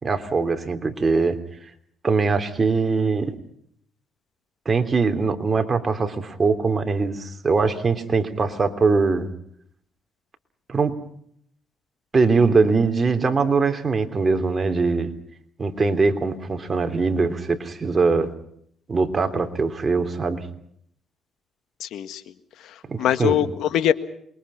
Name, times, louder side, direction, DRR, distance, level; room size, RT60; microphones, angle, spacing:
voice 1, 0.0-1.4 2.0-3.3 4.6-9.3 10.7-11.0 12.1-15.1 15.6-18.3 18.9-20.5 22.9-23.4, right 4 dB, 30° right, 7 dB, 3.2 m, -22 dB
voice 2, 21.8-22.2 22.6-23.9, left 10 dB, 80° left, 11 dB, 1.6 m, -23 dB
27.5 x 23.0 x 5.7 m, 0.67 s
cardioid pair, 90°, 0 cm